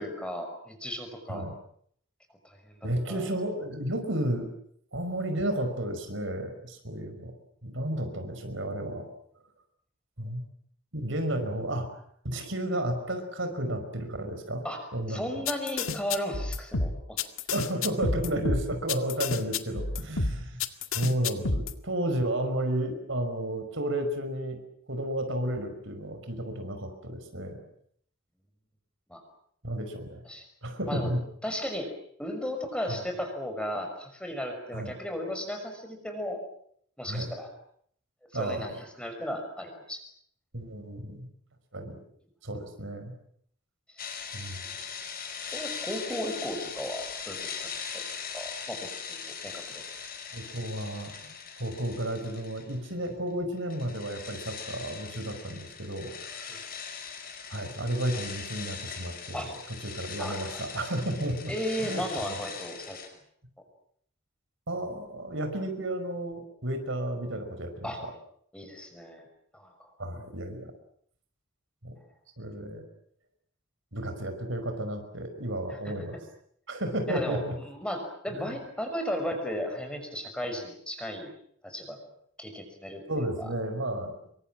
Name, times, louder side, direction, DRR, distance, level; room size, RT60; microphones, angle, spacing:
voice 1, 0.0-1.4 2.4-2.8 3.1-3.3 14.6-17.2 29.1-29.2 30.3-30.4 30.9-31.1 31.4-31.9 32.2-36.4 37.0-37.5 38.3-40.0 45.5-47.7 47.9-48.1 48.3-49.6 56.5-56.6 59.3-59.5 60.2-60.6 61.5-63.0 67.8-68.0 68.5-69.3 69.5-69.9 75.7-75.9 77.1-81.3 81.6-82.0 82.4-83.5, equal, 5° left, 5 dB, 5.9 m, -35 dB
voice 2, 2.8-4.5 4.9-7.3 7.6-9.1 10.2-10.4 10.9-12.0 12.2-14.6 14.9-15.4 17.5-20.6 20.9-24.6 24.9-27.6 29.6-30.2 30.6-31.2 32.9-33.0 34.7-34.9 37.1-37.3 38.3-38.8 40.5-41.3 41.7-42.0 42.4-43.1 44.3-44.6 50.3-56.1 56.4-56.5 57.5-59.5 59.8-61.5 61.8-62.3 64.7-68.1 70.0-70.7 71.8-71.9 72.4-72.8 73.9-76.2 76.7-77.6 78.4-78.5 83.1-84.1, right 1 dB, 65° right, 7 dB, 5.2 m, -32 dB
sound 1, 15.5-21.7, left 3 dB, 85° left, 2.0 m, -29 dB
sound 2, 44.0-53.1 53.4-63.1, left 6 dB, 45° left, 6.1 m, -40 dB
27.5 x 24.0 x 7.6 m, 0.66 s
head